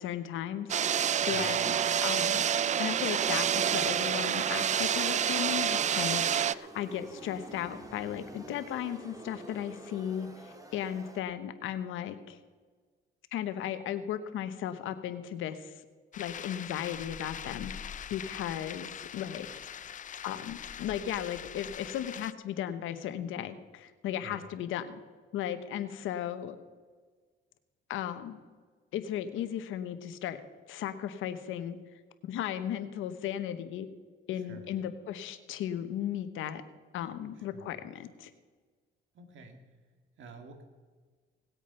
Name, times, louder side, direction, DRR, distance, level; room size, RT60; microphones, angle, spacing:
voice 1, 0.0-1.7 2.0-2.5 2.8-12.4 13.3-15.8 16.2-19.9 20.2-25.0 25.3-26.6 27.9-28.4 28.9-30.4 30.7-31.8 32.2-33.9 34.3-36.6 36.9-38.3, left 10 dB, 90° left, 10 dB, 1.0 m, -36 dB
sound 1, 0.7-6.5, right 9 dB, 35° right, 0.4 m, -28 dB
voice 2, 1.3-1.6 24.2-24.4 34.3-34.7 37.4-37.7 39.1-39.6 40.2-40.6, right 4 dB, 75° right, 5 dB, 2.1 m, -49 dB
sound 2, 4.8-11.2, right 1 dB, 15° right, 1.8 m, -49 dB
sound 3, 16.1-22.3, left 9 dB, 40° left, 0.4 m, -43 dB
18.5 x 8.3 x 5.6 m, 1.5 s
cardioid pair, 90°, 20 cm